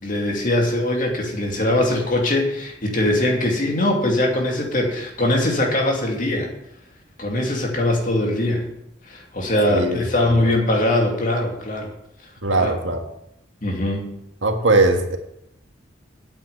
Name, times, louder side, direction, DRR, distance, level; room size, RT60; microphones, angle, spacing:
voice 1, 0.0-6.5 7.2-8.6 9.1-11.9 12.6-12.7 13.6-14.0, left 1 dB, 45° left, 1 dB, 2.6 m, -21 dB
voice 2, 9.7-10.6 12.4-13.0 14.4-15.2, right 2 dB, 85° right, 4 dB, 1.7 m, -20 dB
8.9 x 7.8 x 8.5 m, 0.82 s
head